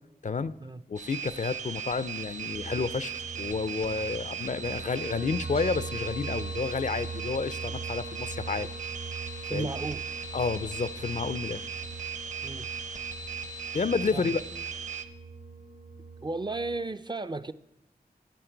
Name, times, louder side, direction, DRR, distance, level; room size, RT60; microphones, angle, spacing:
voice 1, 0.9-8.7 9.5-9.7 10.3-11.6 13.7-14.4, left 4 dB, 50° left, 16 dB, 0.4 m, -30 dB
sound 1, 1.0-15.0, right 6 dB, 50° right, 0.9 m, -38 dB
sound 2, 2.5-16.8, right 4 dB, 80° right, 2.0 m, -41 dB
voice 2, 9.5-10.0 12.4-12.7 14.1-14.4 16.2-17.5, right 3 dB, 25° right, 11 dB, 0.4 m, -34 dB
13.0 x 8.5 x 4.5 m, 1.0 s
wide cardioid pair, 65°, 17 cm